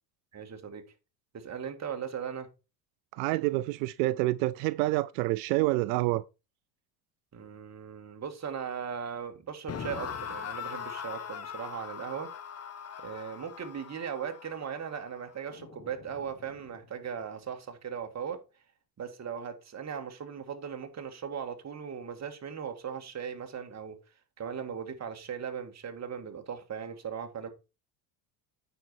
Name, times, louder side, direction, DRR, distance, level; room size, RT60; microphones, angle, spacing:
voice 1, 0.3-0.8 1.3-2.5 7.3-12.3 13.0-18.4 19.0-24.0 24.4-27.5, right 7 dB, 30° right, 2.0 m, -38 dB
voice 2, 3.1-6.2, right 19 dB, 80° right, 0.5 m, -27 dB
sound 1, 9.7-16.8, left 7 dB, 30° left, 1.3 m, -41 dB
9.1 x 5.5 x 4.5 m
supercardioid pair, 90°, 49 cm